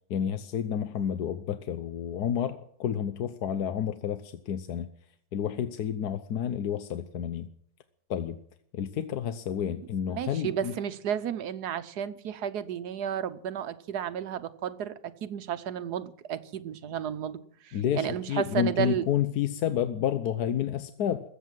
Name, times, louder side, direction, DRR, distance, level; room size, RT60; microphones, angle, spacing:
voice 1, 0.1-4.9 5.3-7.5 8.1-8.4 8.7-10.7 17.7-21.3, left 9 dB, 65° left, 10 dB, 1.3 m, -30 dB
voice 2, 10.1-19.0, right 9 dB, 65° right, 12 dB, 1.4 m, -32 dB
21.5 x 8.4 x 7.5 m, 0.68 s
omnidirectional pair, 1.9 m